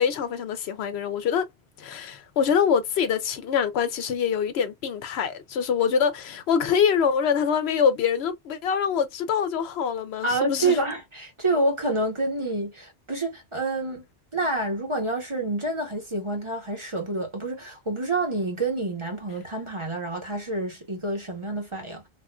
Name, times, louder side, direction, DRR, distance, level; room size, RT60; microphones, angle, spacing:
voice 1, 0.0-1.5 1.8-10.8, left 7 dB, 75° left, 0.8 m, -24 dB
voice 2, 10.2-14.1 14.3-22.1, right 2 dB, 30° right, 1.0 m, -28 dB
3.5 x 2.4 x 2.2 m
omnidirectional pair, 1.1 m